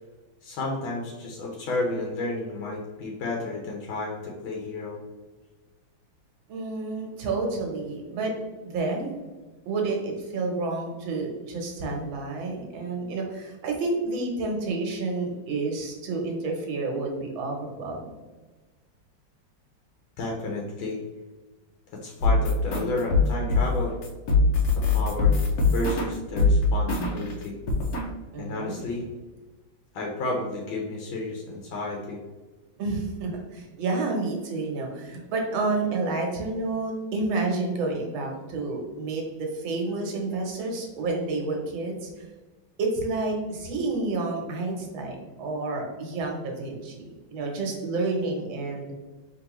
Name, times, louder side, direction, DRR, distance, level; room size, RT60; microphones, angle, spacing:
voice 1, 0.4-5.0 20.2-21.0 22.0-23.9 24.8-25.4 25.7-27.6 28.4-29.0 29.9-32.2, left 2 dB, 80° left, -1 dB, 1.5 m, -31 dB
voice 2, 6.5-8.3 8.6-9.2 9.7-18.1 28.3-28.8 32.8-42.3 42.8-48.9, right 3 dB, 80° right, 2 dB, 1.7 m, -30 dB
sound 1, 22.2-27.3 27.7-28.1, left 3 dB, 60° left, 1.1 m, -22 dB
4.5 x 3.5 x 3.0 m, 1.2 s
omnidirectional pair, 2.2 m